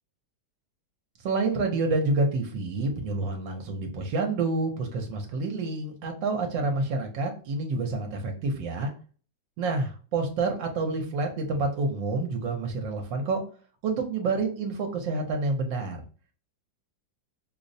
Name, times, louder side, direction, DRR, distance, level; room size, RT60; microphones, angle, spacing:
voice 1, 1.2-8.9 9.6-13.4 13.8-16.0, right 3 dB, 80° right, 3 dB, 1.3 m, -28 dB
5.1 x 2.0 x 2.6 m, 0.39 s
omnidirectional pair, 2.0 m